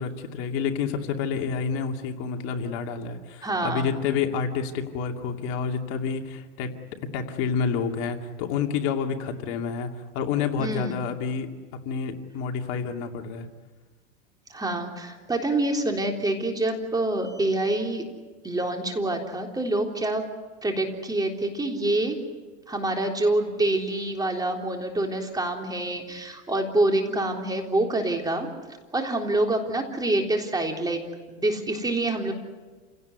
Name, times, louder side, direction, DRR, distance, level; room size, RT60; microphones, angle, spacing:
voice 1, 0.0-6.7 7.0-11.5 11.8-13.5, left 6 dB, 55° left, 4 dB, 2.6 m, -29 dB
voice 2, 3.4-3.9 10.6-10.9 14.5-18.0 18.4-20.2 20.6-22.2 22.7-28.5 28.9-31.0 31.3-32.3, right 2 dB, 10° right, 3 dB, 3.6 m, -26 dB
29.0 x 17.5 x 9.7 m, 1.3 s
supercardioid pair, 130°, 37 cm